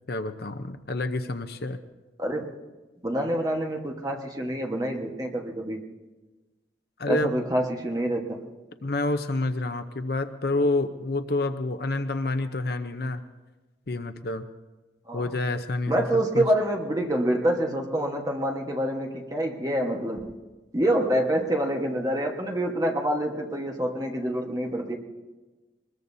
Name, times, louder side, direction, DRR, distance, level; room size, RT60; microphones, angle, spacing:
voice 1, 0.1-1.8 7.0-7.4 8.8-13.2 13.9-14.4 15.1-16.1 16.3-16.4, left 2 dB, 55° left, 9 dB, 0.7 m, -28 dB
voice 2, 2.2-2.6 3.0-5.8 7.0-8.4 15.1-15.3 15.9-20.3 20.7-25.0, right 1 dB, 20° right, 2 dB, 1.3 m, -27 dB
22.5 x 21.0 x 2.7 m, 1.2 s
head